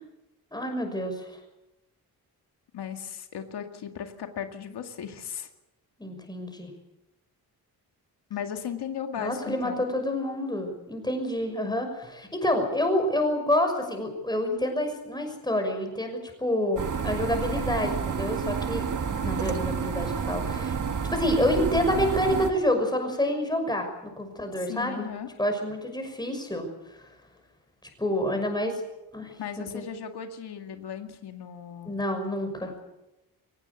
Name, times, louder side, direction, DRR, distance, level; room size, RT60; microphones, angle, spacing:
voice 1, 0.5-1.4 6.0-6.7 9.2-18.9 19.2-20.7 21.1-25.1 25.4-26.6 28.0-28.8 29.1-29.8 31.9-32.7, left 1 dB, 10° left, 5 dB, 6.1 m, -28 dB
voice 2, 2.7-5.5 8.3-9.9 24.6-25.3 29.4-31.9, left 8 dB, 90° left, 5 dB, 2.2 m, -36 dB
sound 1, 16.8-22.5, right 6 dB, 50° right, 1.7 m, -29 dB
23.0 x 19.0 x 8.2 m, 0.95 s
wide cardioid pair, 130°, 39 cm